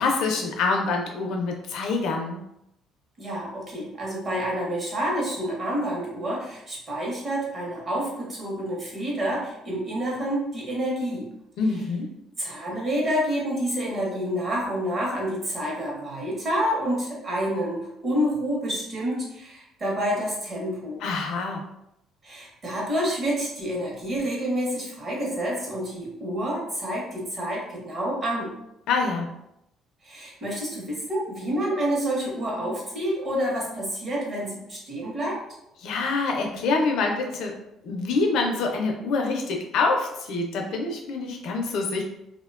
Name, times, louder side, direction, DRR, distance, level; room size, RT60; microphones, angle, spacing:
voice 1, 0.0-2.4 11.6-12.1 21.0-21.7 28.9-29.4 35.8-37.6 37.8-42.0, left 3 dB, 65° left, 2 dB, 0.4 m, -26 dB
voice 2, 3.2-11.3 12.4-21.0 22.2-28.5 30.0-35.4, equal, 30° right, -3 dB, 0.7 m, -28 dB
2.7 x 2.1 x 2.3 m, 0.82 s
cardioid pair, 175°, 0 cm